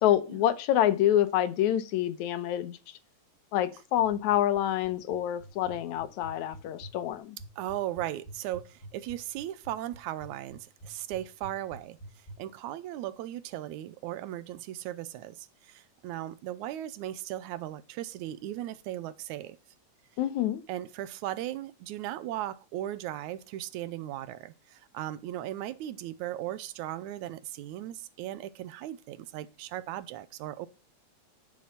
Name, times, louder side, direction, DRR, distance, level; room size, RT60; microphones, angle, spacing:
voice 1, 0.0-3.0 3.5-7.4 20.2-20.6, left 12 dB, 80° left, 2.2 m, -27 dB
sound 1, 4.0-12.4, right 1 dB, 25° left, 1.3 m, -47 dB
voice 2, 7.6-12.0 12.4-19.6 20.7-30.7, right 13 dB, 85° right, 2.1 m, -37 dB
10.0 x 6.1 x 5.7 m
omnidirectional pair, 3.4 m